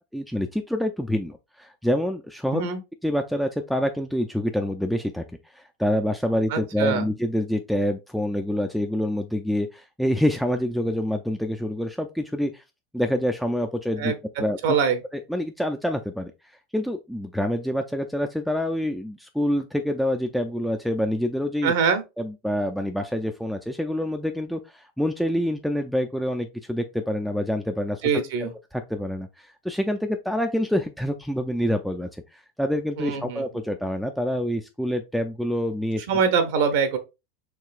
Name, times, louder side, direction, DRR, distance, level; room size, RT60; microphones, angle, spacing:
voice 1, 0.1-2.7 3.0-5.2 5.5-12.6 12.9-14.6 15.1-16.3 16.7-21.7 22.2-36.1, equal, ahead, 0.4 m, -27 dB
voice 2, 6.5-7.0 14.0-14.1 14.6-15.0 21.6-22.0 28.0-28.5 33.0-33.4 36.1-37.0, right 6 dB, 65° right, 0.8 m, -23 dB
4.7 x 3.1 x 2.4 m
hypercardioid pair, 95°, 0 cm